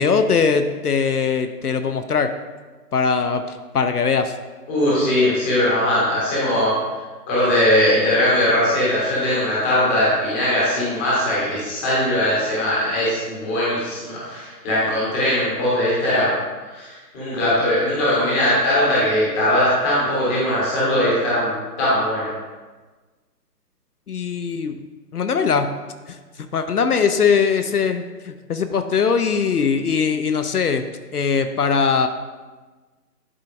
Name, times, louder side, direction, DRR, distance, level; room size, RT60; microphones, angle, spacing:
voice 1, 0.0-2.3 2.9-4.4 24.1-24.8 25.1-25.7 26.1-26.2 26.5-30.8 31.1-32.1, left 5 dB, 65° left, 8 dB, 0.6 m, -20 dB
voice 2, 4.7-6.7 7.3-16.3 16.7-22.3, left 1 dB, 5° left, -8 dB, 0.9 m, -20 dB
11.0 x 4.5 x 2.6 m, 1.3 s
figure-of-eight pair, 145°, 49 cm